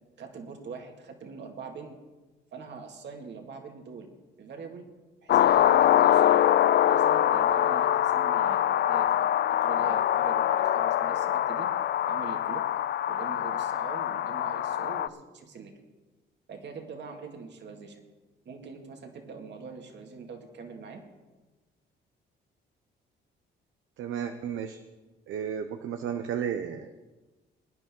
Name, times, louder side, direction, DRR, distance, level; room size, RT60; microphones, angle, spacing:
voice 1, 0.2-2.0 2.5-4.1 4.4-4.9 5.2-6.4 6.8-11.7 12.0-12.7 13.1-15.7 16.5-18.0 18.5-21.0, right 5 dB, 60° right, 3 dB, 2.2 m, -43 dB
sound 1, 5.3-15.1, left 11 dB, 55° left, 0.4 m, -24 dB
voice 2, 24.0-24.8 25.3-26.9, right 8 dB, 75° right, 7 dB, 0.8 m, -33 dB
20.5 x 10.0 x 3.8 m, 1.2 s
cardioid pair, 90°, 20 cm